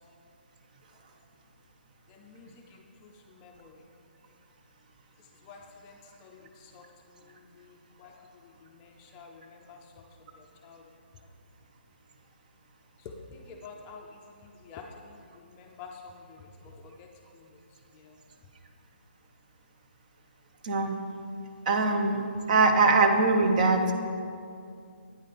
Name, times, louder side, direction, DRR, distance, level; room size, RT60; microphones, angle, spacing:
voice 1, 2.1-3.8 5.2-10.8 13.0-17.6 17.9-18.2, left 4 dB, 20° left, 2 dB, 0.4 m, -50 dB
voice 2, 21.7-23.9, right 3 dB, 40° right, 5 dB, 0.7 m, -22 dB
9.2 x 5.1 x 4.1 m, 2.4 s
hypercardioid pair, 155°, 6 cm